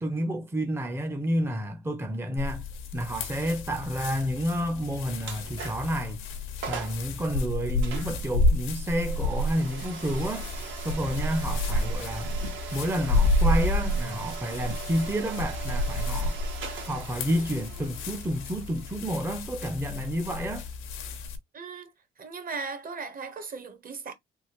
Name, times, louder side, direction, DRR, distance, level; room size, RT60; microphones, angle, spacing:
voice 1, 0.0-2.7 2.9-6.2 6.7-10.5 10.8-12.4 12.7-16.4 16.9-20.7, equal, 10° right, 0.5 m, -30 dB
sound 1, 2.4-21.4, left 2 dB, 90° left, 0.8 m, -30 dB
sound 2, 5.2-6.0 6.4-6.5 6.6-7.1 7.8-20.5, right 6 dB, 75° right, 1.4 m, -41 dB
voice 2, 21.5-21.9 22.2-24.1, right 4 dB, 45° right, 1.0 m, -37 dB
3.5 x 2.4 x 2.9 m
cardioid pair, 90°, 20 cm